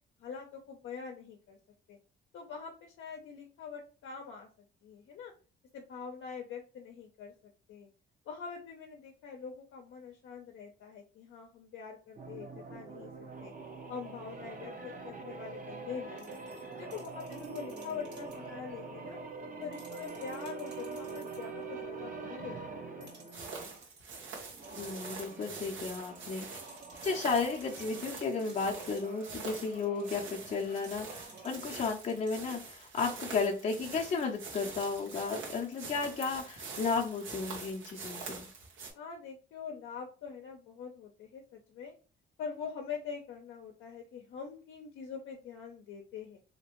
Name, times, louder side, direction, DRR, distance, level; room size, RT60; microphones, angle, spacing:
voice 1, 0.2-1.6 1.9-2.0 2.3-4.5 4.8-5.3 5.7-7.3 7.7-7.9 8.3-13.1 13.4-13.5 13.9-16.4 16.7-19.2 19.6-23.3 39.0-41.9 42.4-46.4, left 6 dB, 75° left, 1 dB, 0.6 m, -44 dB
sound 1, 12.2-23.8 24.5-31.6, right 4 dB, 40° right, 0.8 m, -45 dB
sound 2, 16.2-18.5 19.6-21.6 23.0-25.0 26.5-29.3 30.7-32.7, right 2 dB, 60° right, 1.5 m, -58 dB
sound 3, 23.3-38.9, right 4 dB, 80° right, 1.2 m, -45 dB
voice 2, 24.7-26.6 27.0-38.5, left 4 dB, 35° left, -1 dB, 0.6 m, -34 dB
3.3 x 2.8 x 3.0 m, 0.35 s
cardioid pair, 90°, 20 cm